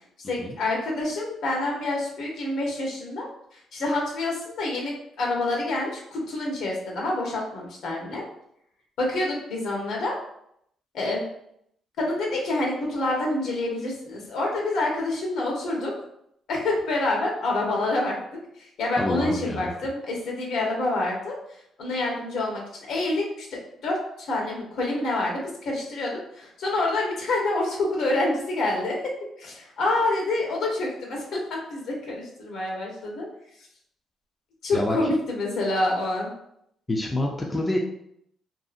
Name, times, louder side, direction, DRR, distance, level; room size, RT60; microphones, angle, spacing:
voice 1, 0.2-3.3 3.5-8.2 9.0-10.2 10.9-11.2 12.0-15.9 16.5-18.1 18.6-21.4 21.8-33.3 34.6-36.3, left 2 dB, 75° left, -1 dB, 0.9 m, -27 dB
voice 2, 19.0-19.7 34.7-35.0 36.9-37.8, left 1 dB, 20° left, -1 dB, 0.4 m, -27 dB
2.7 x 2.4 x 2.5 m, 0.73 s
cardioid pair, 90°, 0 cm